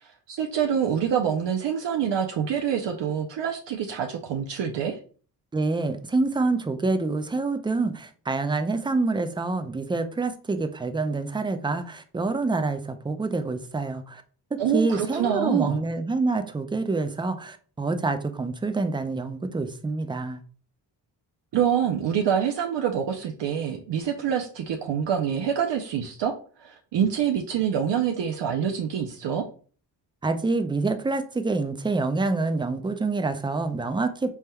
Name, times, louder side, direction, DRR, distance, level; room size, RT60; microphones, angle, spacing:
voice 1, 0.0-5.0 14.6-15.8 21.5-26.3 26.6-29.5, right 8 dB, 70° right, 0.6 m, -26 dB
voice 2, 5.5-14.2 14.7-20.4 30.2-34.3, right 3 dB, 10° right, 0.3 m, -27 dB
4.2 x 3.4 x 2.2 m
cardioid pair, 95°, 44 cm